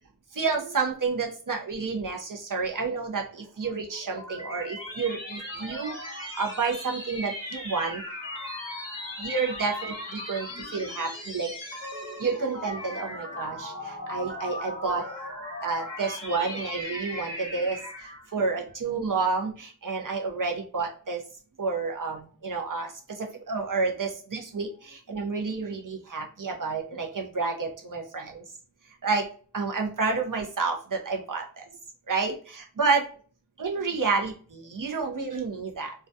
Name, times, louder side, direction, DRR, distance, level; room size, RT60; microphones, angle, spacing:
voice 1, 0.3-8.0 9.2-10.5 10.7-11.5 12.2-15.0 15.6-21.2 21.6-22.9 23.2-28.4 29.0-29.3 29.5-31.6 32.1-33.1 33.6-35.9, right 4 dB, 45° right, 1 dB, 0.6 m, -30 dB
sound 1, 3.6-18.3, left 1 dB, 25° right, 1.2 m, -38 dB
2.3 x 2.2 x 2.6 m, 0.40 s
wide cardioid pair, 45°, 44 cm